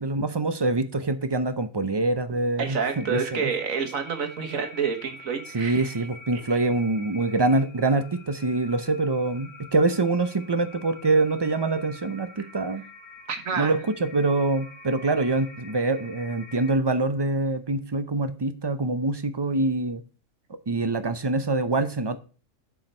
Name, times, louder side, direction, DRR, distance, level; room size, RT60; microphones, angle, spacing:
voice 1, 0.0-3.5 5.5-12.8 13.6-20.0 20.7-22.2, right 2 dB, 25° right, 0.6 m, -25 dB
voice 2, 2.6-5.9 12.4-12.5 13.3-13.7, right 6 dB, 85° right, 1.8 m, -28 dB
sound 1, 2.8-16.7, left 3 dB, 45° right, 3.1 m, -46 dB
7.5 x 4.8 x 5.5 m
omnidirectional pair, 1.4 m